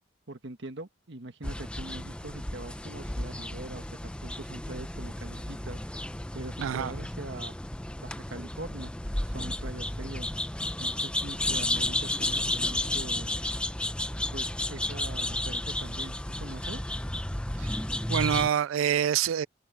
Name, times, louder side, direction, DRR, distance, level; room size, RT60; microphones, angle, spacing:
voice 1, 0.3-3.8 4.2-5.8 6.3-7.5 8.0-8.9 9.2-10.3 10.8-13.3 14.3-16.9, right 2 dB, 60° right, 1.5 m, -42 dB
sound 1, 1.4-18.5, left 1 dB, 5° left, 0.6 m, -32 dB
voice 2, 6.6-6.9 17.6-17.7 18.1-19.5, right 9 dB, 85° right, 0.3 m, -26 dB
open air
head